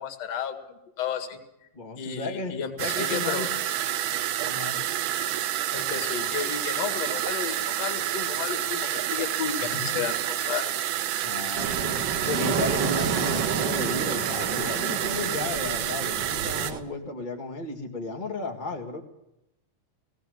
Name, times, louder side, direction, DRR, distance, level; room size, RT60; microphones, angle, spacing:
voice 1, 0.0-1.4 2.0-3.5 5.7-10.7, left 8 dB, 55° left, 8 dB, 2.9 m, -33 dB
voice 2, 1.7-3.5 4.4-4.8 9.6-10.1 11.2-19.0, left 3 dB, 20° left, 0 dB, 1.5 m, -34 dB
sound 1, 2.8-16.7, right 12 dB, 75° right, 2.3 m, -29 dB
sound 2, 11.6-16.8, right 5 dB, 55° right, 1.2 m, -30 dB
19.0 x 17.5 x 7.9 m, 0.87 s
omnidirectional pair, 3.8 m